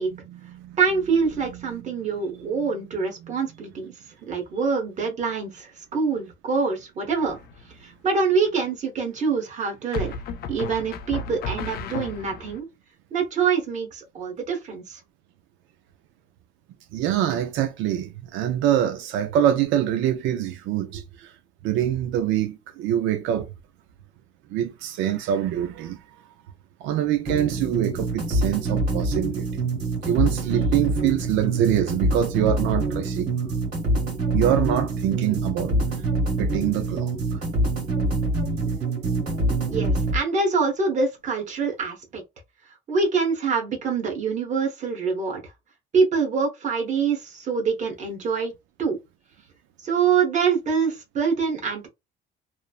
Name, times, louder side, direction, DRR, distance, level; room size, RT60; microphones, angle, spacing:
voice 1, 0.1-0.8 1.8-1.9 3.2-3.3 16.9-21.3 21.6-23.5 24.5-26.0 26.8-29.6 30.0-33.3 34.3-35.8 36.4-37.4, right 11 dB, 90° right, 0.4 m, -25 dB
voice 2, 0.8-3.9 4.3-7.4 7.8-10.1 10.5-12.7 13.1-15.0 39.7-42.2 42.9-45.4 45.9-48.5 48.8-49.0 49.8-51.9, right 5 dB, 40° right, 1.0 m, -25 dB
sound 1, 7.3-7.8 9.9-12.6, left 4 dB, 55° left, 0.5 m, -33 dB
sound 2, 27.3-40.2, right 2 dB, 60° right, 1.8 m, -25 dB
3.0 x 2.0 x 2.3 m
cardioid pair, 150°, 19 cm